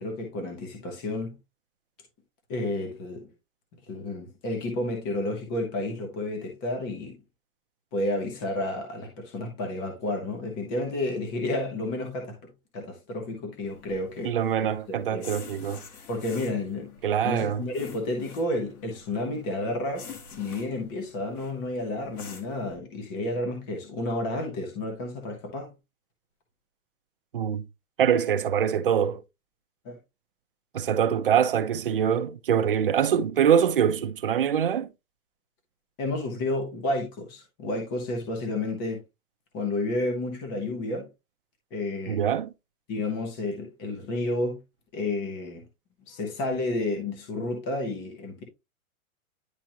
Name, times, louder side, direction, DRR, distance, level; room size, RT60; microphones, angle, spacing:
voice 1, 0.0-1.4 2.5-3.3 3.9-7.2 7.9-14.4 15.1-15.3 16.1-25.7 29.8-30.0 36.0-39.0 39.5-41.1 41.7-42.2 42.9-44.6 44.9-45.6 46.1-48.4, left 2 dB, 15° left, 1.0 m, -31 dB
sound 1, 13.6-22.8, left 5 dB, 80° left, 2.0 m, -48 dB
voice 2, 14.2-15.8 17.0-17.6 27.3-27.7 28.0-29.2 30.7-34.9 42.1-42.5, right 8 dB, 40° right, 0.5 m, -24 dB
10.5 x 3.4 x 2.9 m
hypercardioid pair, 175°, 43 cm